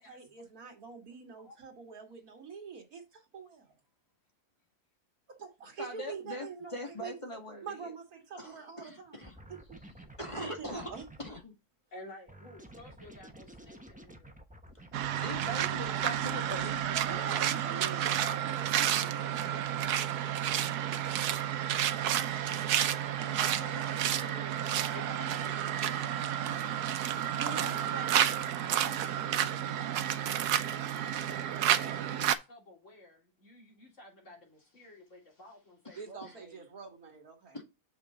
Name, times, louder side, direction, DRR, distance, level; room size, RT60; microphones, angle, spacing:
voice 1, 0.0-3.7 5.4-6.7 7.0-7.1 7.6-9.2 9.5-9.6 10.4-11.0 17.1-21.4 27.3-29.7 36.0-37.6, right 5 dB, 70° right, 2.4 m, -45 dB
voice 2, 5.8-7.9 8.4-9.4 10.2-10.9 11.2-11.6 15.1-18.4 23.3-25.5 35.8-36.4 37.5-37.6, equal, 20° left, 2.0 m, -43 dB
sound 1, 9.2-11.4 12.3-17.2, right 1 dB, 5° right, 0.6 m, -52 dB
voice 3, 11.9-14.4 15.4-19.8 24.9-26.2 27.6-28.5 31.4-36.7, left 1 dB, 55° left, 3.7 m, -53 dB
sound 2, 14.9-32.4, right 10 dB, 90° right, 1.2 m, -31 dB
6.8 x 5.9 x 3.8 m
omnidirectional pair, 1.6 m